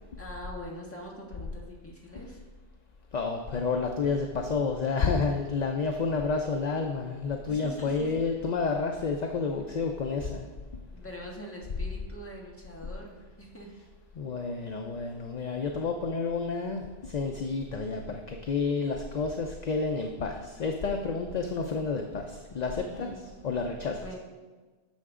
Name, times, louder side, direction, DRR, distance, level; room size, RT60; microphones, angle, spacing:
voice 1, 0.2-2.4 7.5-8.1 10.9-13.7 22.9-23.3 23.8-24.2, equal, 15° left, -3 dB, 1.6 m, -43 dB
voice 2, 3.1-10.5 14.1-24.0, left 4 dB, 50° left, 4 dB, 0.7 m, -30 dB
11.5 x 6.8 x 3.7 m, 1.3 s
omnidirectional pair, 1.1 m